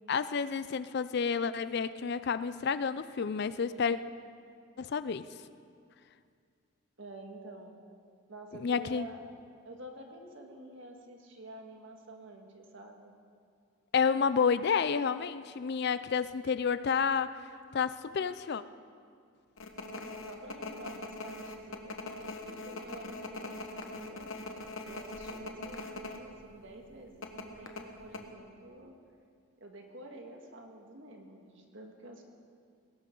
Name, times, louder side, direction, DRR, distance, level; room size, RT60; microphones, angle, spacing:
voice 1, 0.1-4.0 4.8-5.3 8.6-9.1 13.9-17.3 17.7-18.6, left 6 dB, 50° left, 14 dB, 0.4 m, -30 dB
voice 2, 7.0-7.8 8.3-9.3 9.6-13.1 19.8-23.6 23.9-24.3 24.9-29.0 29.6-32.2, right 2 dB, 60° right, 2 dB, 1.8 m, -49 dB
sound 1, 19.6-26.2 26.5-26.6 27.2-28.2, left 2 dB, 70° left, 1.3 m, -41 dB
20.5 x 17.0 x 3.9 m, 2.2 s
head